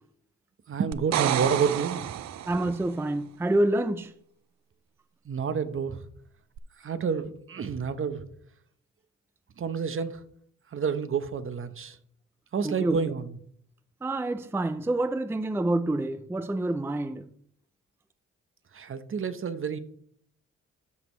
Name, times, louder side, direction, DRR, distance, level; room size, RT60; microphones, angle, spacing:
voice 1, 0.7-2.1 5.2-6.0 6.8-8.3 9.6-10.3 10.7-12.0 12.5-13.3 18.7-19.8, right 6 dB, 45° right, 0.9 m, -29 dB
sound 1, 0.9-2.8 6.6-6.7, right 12 dB, 65° right, 0.5 m, -30 dB
voice 2, 2.5-4.1 12.6-13.0 14.0-17.3, right 1 dB, 10° right, 0.5 m, -27 dB
13.0 x 5.2 x 3.2 m
cardioid pair, 70°, 29 cm